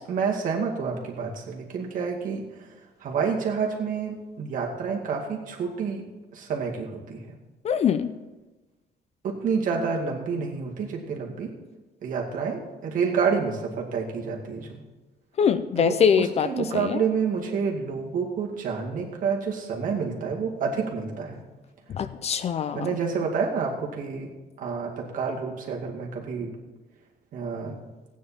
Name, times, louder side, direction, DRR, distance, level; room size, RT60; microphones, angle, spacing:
voice 1, 0.0-6.0 6.3-7.4 9.2-11.5 12.0-14.8 15.8-21.4 22.7-24.3 24.6-26.5 27.3-27.8, right 5 dB, 50° right, 0 dB, 2.2 m, -29 dB
voice 2, 7.6-8.1 15.4-16.5 16.8-17.0 21.9-22.9, left 7 dB, 40° left, 13 dB, 0.4 m, -23 dB
15.5 x 9.4 x 4.3 m, 1.2 s
cardioid pair, 165°, 17 cm